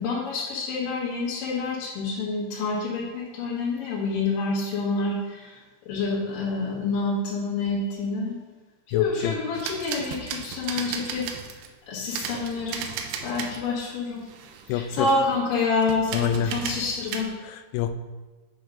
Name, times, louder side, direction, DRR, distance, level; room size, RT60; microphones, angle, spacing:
voice 1, 0.0-5.6 5.9-8.4 8.9-11.3 11.9-12.8 13.2-14.2 14.7-17.3, left 3 dB, 60° left, -7 dB, 2.9 m, -27 dB
voice 2, 8.9-9.3 14.7-15.1 16.1-16.6 17.5-18.0, left 10 dB, 85° left, 8 dB, 2.6 m, -27 dB
sound 1, 9.5-11.7 12.1-13.6 13.9-15.3 15.8-17.2, right 7 dB, 85° right, 2.7 m, -35 dB
7.6 x 4.9 x 5.2 m, 1.2 s
omnidirectional pair, 4.7 m